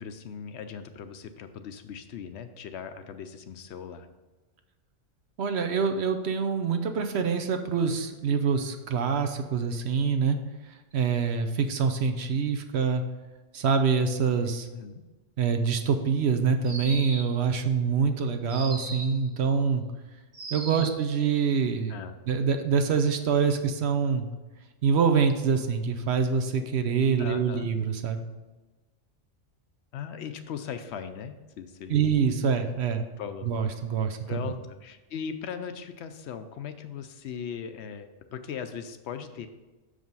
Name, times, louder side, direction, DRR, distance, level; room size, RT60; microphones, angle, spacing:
voice 1, 0.0-4.1 14.7-15.0 20.7-20.9 21.9-22.2 27.2-27.7 29.9-32.0 33.2-33.5 34.3-39.5, left 7 dB, 70° left, 9 dB, 0.8 m, -38 dB
voice 2, 5.4-10.4 10.7-13.0 13.5-14.7 15.4-19.8 20.5-22.0 22.3-24.3 24.8-28.2 31.9-33.0 33.4-34.5, right 6 dB, 65° right, 7 dB, 0.9 m, -25 dB
sound 1, 16.6-17.4 18.5-19.2 20.3-21.1, right 2 dB, 30° right, 0.7 m, -38 dB
6.2 x 5.0 x 5.4 m, 1.2 s
omnidirectional pair, 1.2 m